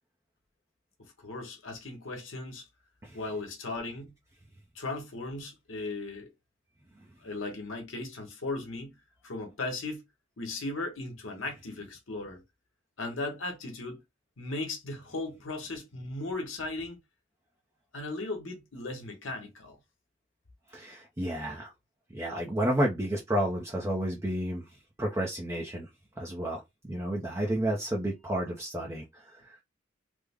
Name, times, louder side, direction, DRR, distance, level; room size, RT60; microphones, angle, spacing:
voice 1, 1.0-2.7 3.1-4.2 4.7-6.3 7.2-8.9 9.2-10.0 10.4-12.4 13.0-14.0 14.4-17.0 17.9-19.8, left 2 dB, 75° left, 1.1 m, -37 dB
voice 2, 20.7-21.7 22.1-24.6 25.0-25.9 26.2-29.5, right 1 dB, 15° right, 0.5 m, -31 dB
3.3 x 2.1 x 3.5 m
head